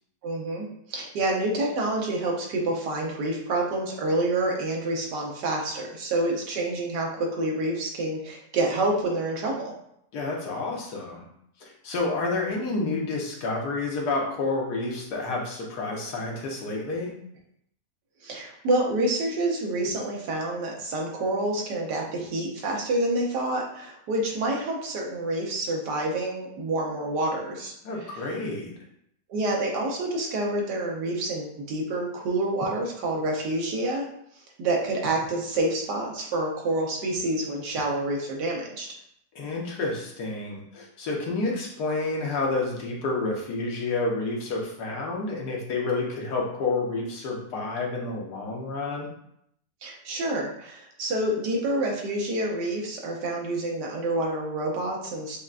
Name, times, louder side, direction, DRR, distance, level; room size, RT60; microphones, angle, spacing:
voice 1, 0.2-9.7 18.2-27.7 28.1-28.2 29.3-34.0 34.6-38.9 49.8-55.4, right 2 dB, 85° right, -1 dB, 1.4 m, -28 dB
voice 2, 10.1-11.3 11.6-17.1 27.8-28.7 39.3-49.1, left 3 dB, 75° left, -1 dB, 1.4 m, -29 dB
6.6 x 2.2 x 2.4 m, 0.73 s
omnidirectional pair, 1.8 m